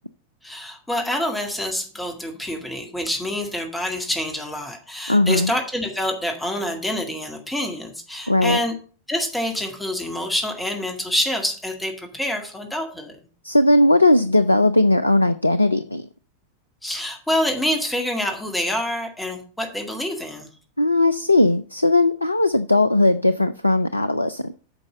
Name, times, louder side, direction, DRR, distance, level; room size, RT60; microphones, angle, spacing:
voice 1, 0.4-8.7 9.1-13.1 16.8-20.5, left 1 dB, 5° left, 2.0 m, -26 dB
voice 2, 5.1-5.5 8.3-8.6 13.4-16.1 20.8-24.5, left 2 dB, 85° left, 0.4 m, -18 dB
8.8 x 5.3 x 6.8 m
figure-of-eight pair, 90°, 0 cm